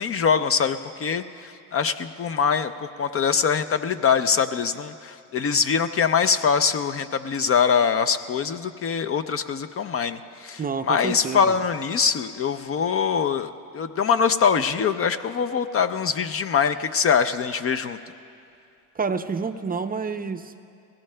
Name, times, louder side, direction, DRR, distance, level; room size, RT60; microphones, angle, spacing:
voice 1, 0.0-18.0, left 6 dB, 35° left, 10 dB, 0.5 m, -23 dB
voice 2, 10.6-11.5 18.9-20.6, right 5 dB, 25° right, 7 dB, 0.5 m, -29 dB
20.5 x 17.5 x 2.2 m, 2.5 s
supercardioid pair, 80°, 39 cm